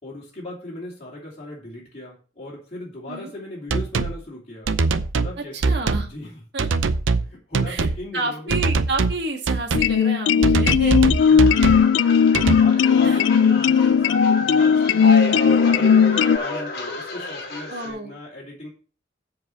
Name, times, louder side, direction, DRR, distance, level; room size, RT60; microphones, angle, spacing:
voice 1, 0.0-4.7 5.1-5.6 6.0-6.4 7.2-8.6 11.1-18.7, left 1 dB, 35° left, -6 dB, 2.9 m, -38 dB
sound 1, 3.7-4.2 4.7-5.3 5.6-6.1 6.6-7.3 7.5-8.0 8.5-9.2 9.5-9.9 10.4-11.9 12.3-12.6, right 4 dB, 85° right, 0.6 m, -22 dB
voice 2, 5.5-6.1 6.5-6.7 7.7-7.9 8.1-11.1 13.0-13.2 17.7-18.1, right 2 dB, 60° right, 1 dB, 1.8 m, -30 dB
sound 2, 9.7-16.4, left 7 dB, 70° left, 0.3 m, -17 dB
sound 3, 11.2-17.9, left 2 dB, 55° left, 2.4 m, -28 dB
7.8 x 4.9 x 6.8 m, 0.38 s
head